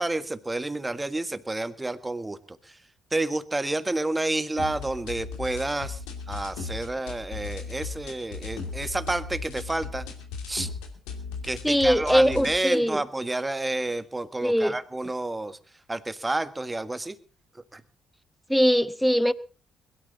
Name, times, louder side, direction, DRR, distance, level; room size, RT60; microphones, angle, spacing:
voice 1, 0.0-2.8 3.1-10.0 10.5-10.7 11.4-15.6 15.9-17.2 17.5-17.8, right 2 dB, 20° right, 1.5 m, -30 dB
sound 1, 4.6-12.6, left 5 dB, 80° left, 2.6 m, -37 dB
voice 2, 11.6-13.0 14.4-14.7 18.5-19.3, equal, ahead, 1.0 m, -21 dB
21.5 x 13.0 x 4.1 m
hypercardioid pair, 45°, 0 cm